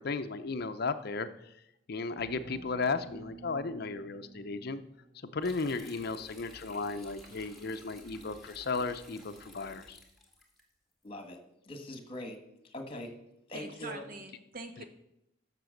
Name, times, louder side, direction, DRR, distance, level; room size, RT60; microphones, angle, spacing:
voice 1, 0.0-1.5 1.9-4.8 5.3-10.0 14.8-14.9, left 4 dB, 50° left, 10 dB, 0.6 m, -35 dB
sound 1, 2.2-5.6, right 3 dB, 85° right, 2.7 m, -51 dB
sound 2, 5.4-10.6, equal, ahead, 2.0 m, -53 dB
voice 2, 11.0-11.4 11.6-12.4 12.6-13.1 13.5-14.1, left 1 dB, 30° left, 6 dB, 1.6 m, -42 dB
voice 3, 13.5-14.8, right 2 dB, 45° right, 7 dB, 1.2 m, -44 dB
12.0 x 6.8 x 6.5 m, 0.82 s
head